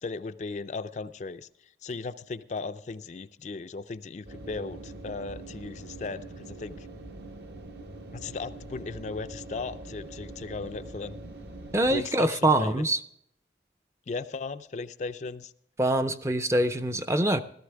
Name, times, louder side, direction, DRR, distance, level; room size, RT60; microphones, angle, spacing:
voice 1, 0.0-1.5 1.8-6.9 8.1-11.2 11.9-12.9 14.1-15.5, left 4 dB, 40° left, 11 dB, 0.4 m, -37 dB
sound 1, 4.3-12.0, right 2 dB, 70° right, 1.3 m, -43 dB
voice 2, 11.7-13.0 15.8-17.4, right 1 dB, 15° right, 10 dB, 0.5 m, -24 dB
14.5 x 13.5 x 3.4 m, 0.71 s
head